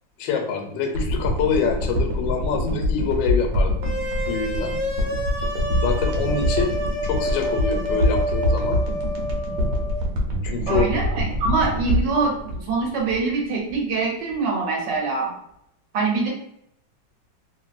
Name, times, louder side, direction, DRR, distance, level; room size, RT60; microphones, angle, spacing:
voice 1, 0.2-3.7 4.3-4.8 5.8-6.7 7.0-8.8 10.4-10.9, left 5 dB, 80° left, 3 dB, 1.3 m, -25 dB
sound 1, 0.9-13.4 13.7-13.8, equal, 90° right, 1.4 m, -25 dB
sound 2, 3.8-10.0, equal, 50° right, 0.5 m, -29 dB
voice 2, 10.7-15.3 15.9-16.3, right 3 dB, 70° right, -2 dB, 1.3 m, -24 dB
3.0 x 2.6 x 2.3 m, 0.76 s
omnidirectional pair, 2.1 m